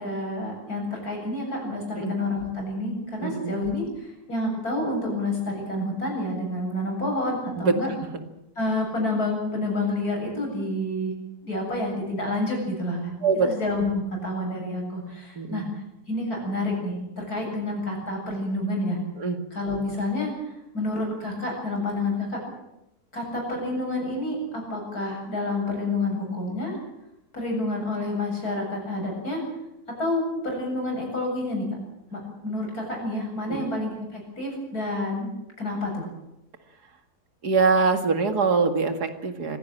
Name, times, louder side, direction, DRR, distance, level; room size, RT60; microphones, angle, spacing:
voice 1, 0.0-7.9 8.6-11.1 11.4-15.6 16.1-19.0 19.5-20.3 20.7-22.4 23.1-26.8 27.3-29.4 30.0-31.7 32.1-35.3 35.6-36.1, left 2 dB, 70° left, 0 dB, 8.6 m, -29 dB
voice 2, 3.2-3.6 7.6-7.7 13.2-13.5 15.4-15.6 19.2-19.4 33.5-33.6 37.4-39.6, right 4 dB, 85° right, 7 dB, 2.6 m, -23 dB
24.0 x 16.5 x 8.9 m, 0.90 s
omnidirectional pair, 1.6 m